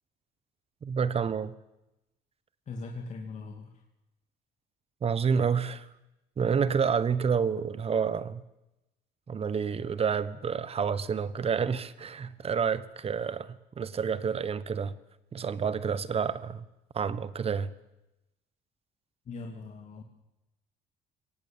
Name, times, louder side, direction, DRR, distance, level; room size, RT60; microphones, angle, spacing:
voice 1, 0.8-1.5 5.0-5.9 6.4-8.4 9.3-14.9 15.3-16.6 16.9-17.7, right 6 dB, 35° right, 16 dB, 1.3 m, -29 dB
voice 2, 2.7-3.8 19.3-20.0, left 3 dB, 45° left, 2 dB, 2.5 m, -40 dB
22.5 x 18.0 x 8.8 m, 0.96 s
cardioid pair, 110°, 17 cm